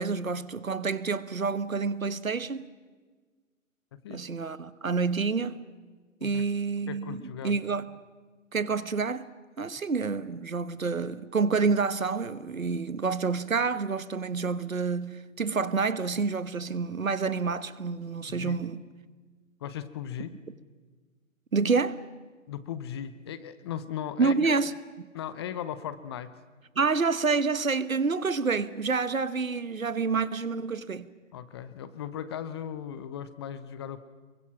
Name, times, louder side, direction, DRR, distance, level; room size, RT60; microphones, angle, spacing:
voice 1, 0.0-2.7 4.1-5.6 6.2-7.9 8.5-9.3 9.6-18.8 21.5-22.0 24.2-24.7 25.0-25.1 26.8-31.1, right 4 dB, 90° right, 1.3 m, -28 dB
voice 2, 3.9-4.2 6.2-6.4 6.9-7.6 18.3-18.6 19.6-20.3 22.5-24.5 25.1-26.4 31.3-34.0, left 9 dB, 20° left, 0.6 m, -37 dB
27.0 x 23.0 x 5.9 m
figure-of-eight pair, 135°, 39 cm